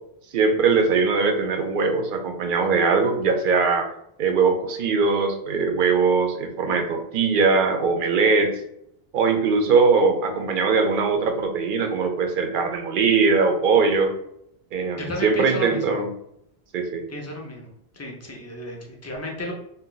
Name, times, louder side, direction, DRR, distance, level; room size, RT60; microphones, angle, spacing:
voice 1, 0.3-3.9 4.2-8.6 9.1-14.1 14.7-16.1 16.7-17.0, right 4 dB, 60° right, 4 dB, 0.6 m, -21 dB
voice 2, 14.9-16.0 17.1-17.7 17.9-19.5, left 1 dB, 25° left, 0 dB, 0.4 m, -33 dB
2.6 x 2.2 x 3.7 m, 0.76 s
omnidirectional pair, 1.1 m